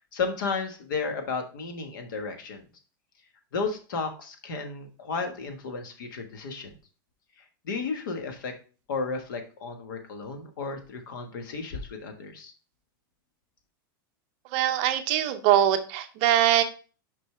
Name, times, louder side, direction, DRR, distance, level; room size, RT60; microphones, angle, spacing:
voice 1, 0.1-2.6 3.5-6.7 7.6-8.5 8.9-12.5, left 4 dB, 65° left, 6 dB, 1.4 m, -33 dB
voice 2, 14.5-16.6, right 11 dB, 30° right, 7 dB, 0.6 m, -22 dB
6.5 x 5.4 x 3.2 m, 0.36 s
supercardioid pair, 180°, 12 cm